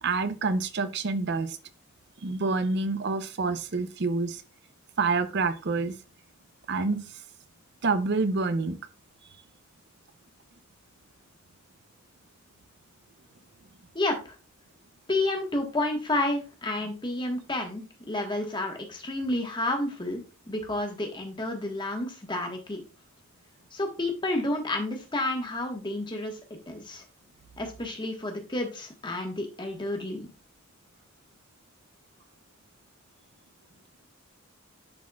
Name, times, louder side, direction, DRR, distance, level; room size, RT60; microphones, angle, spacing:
voice 1, 0.0-1.6 2.2-4.4 5.0-5.9 6.7-7.0 7.8-8.8, right 3 dB, 55° right, 12 dB, 0.6 m, -27 dB
voice 2, 15.1-20.2 20.5-22.8 23.7-26.4 26.7-27.0 27.6-30.3, left 2 dB, 25° left, 3 dB, 1.3 m, -30 dB
10.5 x 4.2 x 2.4 m, 0.32 s
head